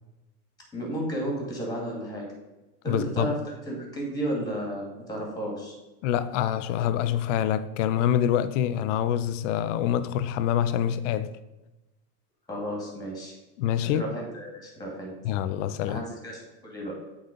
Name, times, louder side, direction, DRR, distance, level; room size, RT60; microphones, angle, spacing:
voice 1, 0.7-2.3 2.8-5.8 12.5-13.4 13.8-15.1 15.8-17.0, right 1 dB, 10° left, 2.3 m, -33 dB
voice 2, 2.9-3.3 6.0-11.3 13.6-14.0 15.2-16.0, left 10 dB, 50° left, 0.6 m, -26 dB
7.9 x 4.1 x 5.2 m
supercardioid pair, 135°, 47 cm